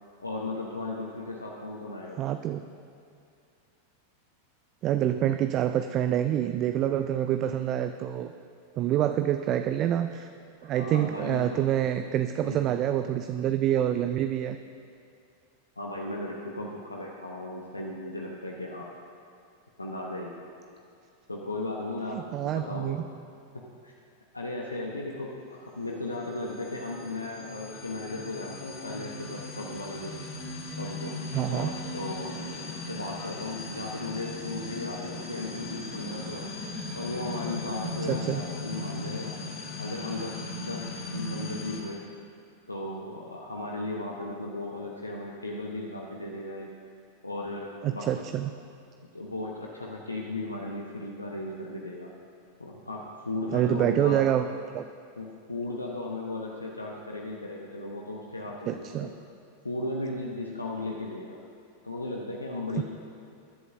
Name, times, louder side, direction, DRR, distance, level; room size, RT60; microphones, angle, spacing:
voice 1, 0.2-2.2 10.6-11.6 12.4-12.6 15.8-18.9 19.8-20.5 21.3-23.0 23.5-23.9 24.3-30.1 30.8-31.1 31.5-36.5 36.9-39.4 39.8-42.0 42.7-46.7 47.2-48.2 49.1-52.1 52.6-54.2 55.2-59.1 59.6-61.4 61.8-62.8, left 2 dB, 80° left, -1 dB, 1.0 m, -36 dB
voice 2, 2.2-2.6 4.8-8.3 8.7-10.3 10.6-14.6 22.1-23.0 31.3-31.7 38.1-38.4 47.8-48.5 53.5-54.5 54.7-54.8 58.7-59.1 62.8-62.9, right 11 dB, 35° right, 9 dB, 0.4 m, -27 dB
sound 1, 26.1-41.8, left 2 dB, 50° left, 2.9 m, -38 dB
22.5 x 11.0 x 2.6 m, 2.4 s
figure-of-eight pair, 90°, 0 cm